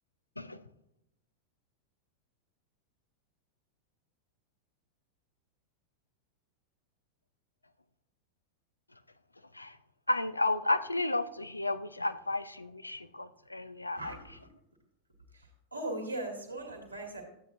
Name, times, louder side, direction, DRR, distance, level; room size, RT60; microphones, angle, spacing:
voice 1, 10.1-14.1, left 2 dB, 85° left, 13 dB, 0.5 m, -32 dB
voice 2, 13.9-14.5 15.3-17.2, right 2 dB, 85° right, 0 dB, 2.0 m, -39 dB
13.0 x 8.4 x 2.5 m, 0.86 s
figure-of-eight pair, 90°, 0 cm